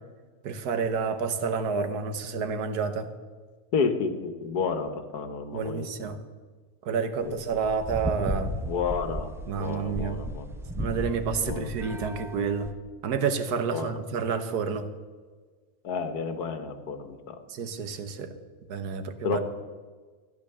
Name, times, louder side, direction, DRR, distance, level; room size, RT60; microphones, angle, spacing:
voice 1, 0.4-3.1 5.5-6.2 6.8-8.5 9.5-10.2 10.8-12.7 13.0-14.9 17.5-18.4 18.7-19.4, right 5 dB, 85° right, 10 dB, 1.6 m, -29 dB
voice 2, 3.7-6.2 7.2-7.4 8.6-9.3 9.6-10.5 11.4-11.7 13.7-14.0 15.8-17.4 19.2-19.4, left 5 dB, 90° left, 9 dB, 1.7 m, -31 dB
sound 1, 7.3-12.7, equal, 5° right, 0.3 m, -35 dB
14.5 x 9.7 x 6.8 m, 1.4 s
omnidirectional pair, 1.6 m